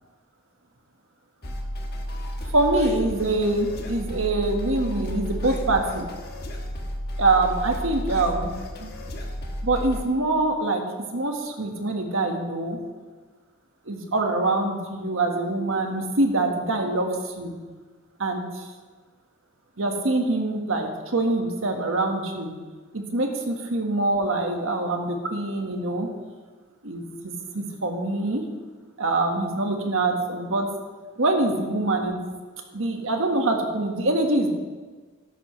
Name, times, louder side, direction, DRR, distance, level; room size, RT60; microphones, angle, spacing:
sound 1, 1.4-10.0, equal, 45° left, 1.2 m, -32 dB
voice 1, 2.5-6.1 7.2-8.5 8.8-8.9 9.6-10.8 11.1-12.8 13.9-17.5 18.2-18.6 19.8-22.5 22.9-26.1 26.8-28.5 29.0-30.7 31.2-32.2 32.7-34.5, right 2 dB, 70° right, 3 dB, 1.5 m, -24 dB
13.5 x 11.0 x 3.2 m, 1.4 s
head